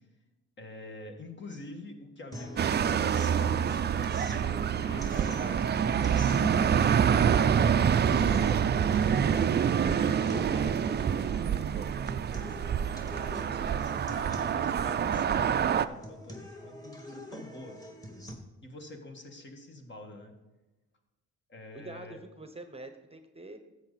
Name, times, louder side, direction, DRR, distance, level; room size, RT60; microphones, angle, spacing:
voice 1, 0.6-7.5 8.1-9.6 10.3-11.4 12.7-12.9 13.3-17.8 18.6-20.3 21.5-22.2, left 2 dB, 40° left, 4 dB, 2.0 m, -46 dB
sound 1, 2.3-18.3, equal, 10° left, 2.0 m, -44 dB
sound 2, 2.6-15.9, right 8 dB, 35° right, 0.5 m, -26 dB
voice 2, 21.8-23.6, right 2 dB, 20° right, 8 dB, 1.0 m, -45 dB
13.0 x 8.1 x 4.1 m, 1.1 s
cardioid pair, 90°, 30 cm